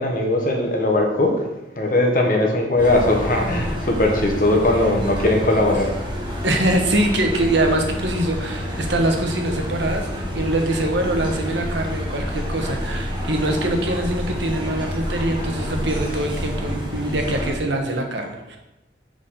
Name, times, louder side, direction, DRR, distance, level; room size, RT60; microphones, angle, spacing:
voice 1, 0.0-1.5 1.8-5.9, left 1 dB, 50° left, 1 dB, 1.2 m, -19 dB
sound 1, 2.8-17.5, equal, 25° right, 1.4 m, -28 dB
voice 2, 6.4-18.6, right 1 dB, 80° right, 3 dB, 1.2 m, -23 dB
6.3 x 5.4 x 4.2 m, 0.96 s
head